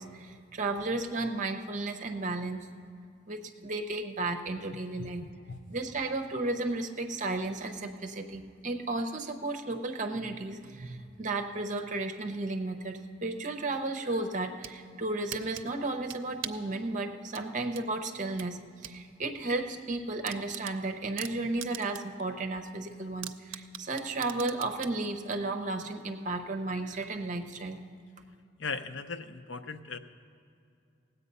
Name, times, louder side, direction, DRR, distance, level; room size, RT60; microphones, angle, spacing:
voice 1, 0.0-2.7 3.3-5.2 5.7-27.8, right 2 dB, 40° right, 5 dB, 0.8 m, -34 dB
sound 1, 14.3-14.8 15.3-16.7 17.3-19.0 19.4-19.5 19.8-19.9 20.2-22.2 22.6-22.7 23.2-25.0, right 11 dB, 80° right, 0.5 m, -41 dB
voice 2, 28.6-30.0, left 4 dB, 65° left, 9 dB, 0.6 m, -37 dB
18.0 x 8.1 x 5.5 m, 2.5 s
head